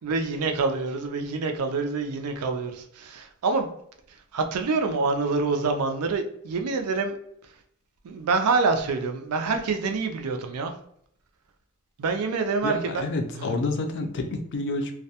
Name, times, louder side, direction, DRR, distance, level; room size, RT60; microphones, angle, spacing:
voice 1, 0.0-3.7 4.1-7.2 8.0-10.7 12.0-13.0 13.3-13.5, right 4 dB, 85° right, 5 dB, 0.4 m, -26 dB
voice 2, 12.6-14.9, left 2 dB, 55° left, 5 dB, 0.4 m, -29 dB
2.2 x 2.1 x 2.8 m, 0.70 s
head